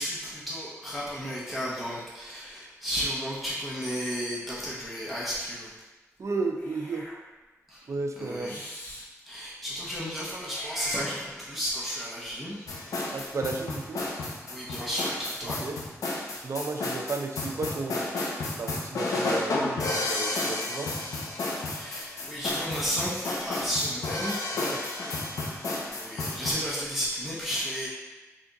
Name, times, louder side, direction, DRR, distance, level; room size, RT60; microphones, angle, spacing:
voice 1, 0.0-5.7 7.7-7.8 8.2-8.6 9.2-12.8 14.1-14.2 14.5-15.6 21.6-24.4 25.9-27.9, equal, ahead, -8 dB, 0.9 m, -33 dB
voice 2, 6.2-7.1 7.9-8.6 13.1-14.0 15.4-15.8 16.4-18.1 18.6-20.9 21.3-21.5 24.5-24.9, right 3 dB, 60° right, 3 dB, 0.5 m, -33 dB
Meow / Hiss, 6.6-7.2 8.4-9.1 10.4-11.6, equal, 35° left, 1.0 m, -40 dB
sound 1, 12.7-26.5, left 2 dB, 85° left, 0.6 m, -31 dB
3.5 x 2.5 x 3.9 m, 1.2 s
cardioid pair, 60°, 6 cm